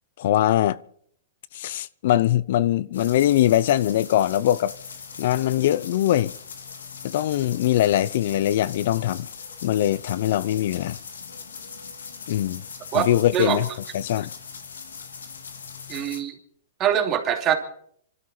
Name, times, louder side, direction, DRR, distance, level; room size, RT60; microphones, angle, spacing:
voice 1, 0.2-0.8 1.5-4.7 5.2-6.3 7.0-9.3 9.6-11.0 12.3-12.6 12.9-13.7 13.9-14.3, left 12 dB, 60° left, 0.6 m, -22 dB
sound 1, 2.9-16.2, left 5 dB, 85° left, 2.5 m, -40 dB
voice 2, 12.9-13.6 15.9-16.4 16.8-17.5, right 10 dB, 30° right, 2.7 m, -23 dB
25.5 x 12.5 x 4.4 m
hypercardioid pair, 130°, 0 cm